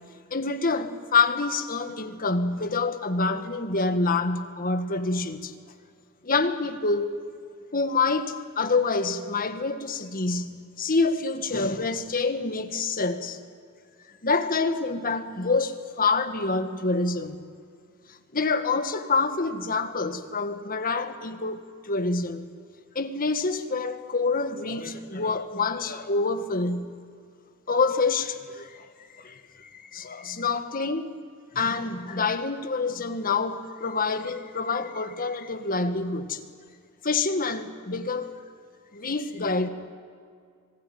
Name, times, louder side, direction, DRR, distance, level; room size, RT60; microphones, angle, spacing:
voice 1, 0.3-5.5 6.2-7.1 7.7-13.4 14.2-17.4 18.1-22.4 22.9-27.0 27.7-28.9 29.2-31.1 31.5-36.4 37.0-38.4 38.9-39.7, left 4 dB, 40° left, 1.6 m, -27 dB
25.5 x 19.0 x 9.4 m
head